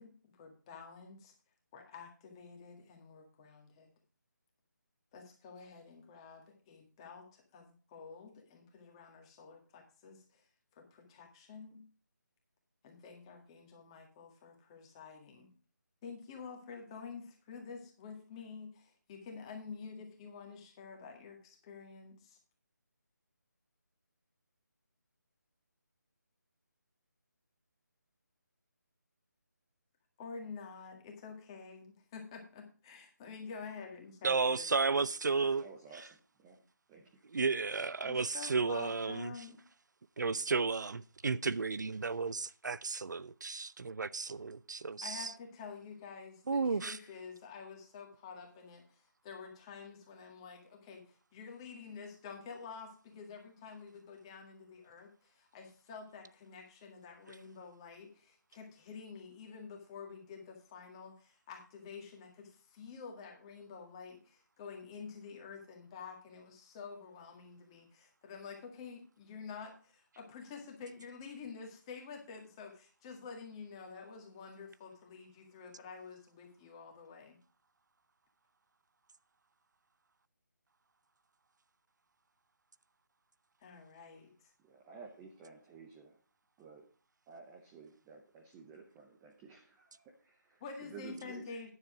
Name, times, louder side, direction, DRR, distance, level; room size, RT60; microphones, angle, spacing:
voice 1, 0.0-1.3 1.7-3.9 5.1-10.5 10.7-11.8 12.8-15.5 16.0-22.4 30.2-35.0 38.0-39.6 45.0-77.4 83.6-84.5 90.6-91.7, left 5 dB, 15° left, 1.8 m, -49 dB
voice 2, 34.2-35.7 37.3-39.3 40.2-45.3 46.5-47.0, right 4 dB, 70° right, 0.5 m, -33 dB
voice 3, 35.3-37.2 84.6-86.2 86.6-86.9 87.3-91.5, right 5 dB, 10° right, 0.6 m, -53 dB
9.8 x 7.3 x 4.9 m
figure-of-eight pair, 170°, 10 cm